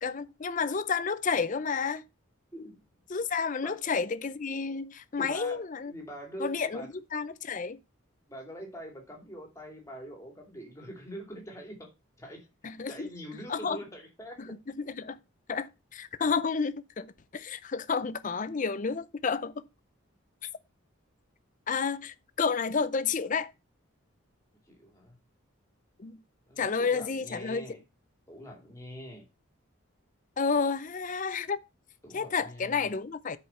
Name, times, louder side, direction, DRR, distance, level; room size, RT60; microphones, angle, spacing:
voice 1, 0.0-2.0 3.1-5.9 6.4-7.8 12.6-13.1 13.5-13.8 14.4-14.5 14.8-15.2 15.5-19.7 21.7-23.5 26.0-26.2 26.6-27.7 30.4-31.6 32.1-33.4, left 5 dB, 35° left, 0.5 m, -31 dB
voice 2, 5.2-6.9 8.3-11.9 12.2-12.5 12.9-14.6 24.7-25.2 26.5-27.8 28.3-29.3 32.0-32.9, equal, 15° left, 2.6 m, -44 dB
11.0 x 5.0 x 4.3 m
head